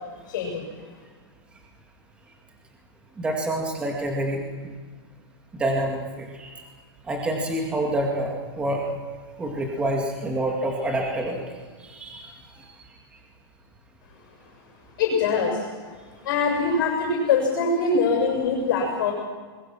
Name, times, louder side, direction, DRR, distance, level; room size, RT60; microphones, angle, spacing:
voice 1, 0.3-0.7 15.0-15.6 16.2-19.1, left 4 dB, 50° left, 0 dB, 7.2 m, -23 dB
voice 2, 3.2-4.8 5.5-6.5 7.1-8.8 9.4-11.4 11.8-12.3, right 1 dB, 10° right, 1 dB, 2.1 m, -27 dB
25.5 x 22.0 x 6.1 m, 1.5 s
supercardioid pair, 175°, 14 cm